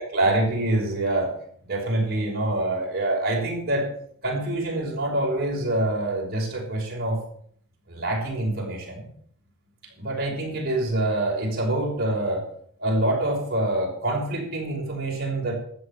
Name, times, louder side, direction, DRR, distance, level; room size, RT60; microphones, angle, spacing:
voice 1, 0.0-1.3 1.7-3.9 4.2-7.2 7.9-9.1 10.0-12.4 12.8-15.6, right 1 dB, 45° right, -2 dB, 5.8 m, -25 dB
13.0 x 8.3 x 9.0 m, 0.63 s
head